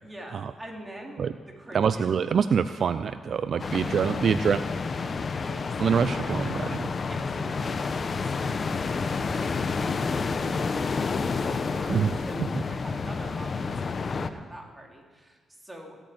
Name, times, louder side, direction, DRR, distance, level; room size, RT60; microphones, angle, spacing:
voice 1, 0.0-2.0 3.5-4.3 5.4-5.8 7.1-16.0, right 1 dB, 15° right, 0 dB, 3.7 m, -45 dB
voice 2, 1.7-4.6 5.8-6.9 11.9-12.1 12.4-12.5, right 6 dB, 60° right, 12 dB, 0.5 m, -25 dB
sound 1, 3.6-14.3, left 4 dB, 45° left, 0.9 m, -29 dB
16.0 x 8.9 x 9.5 m, 1.5 s
cardioid pair, 75°, 0 cm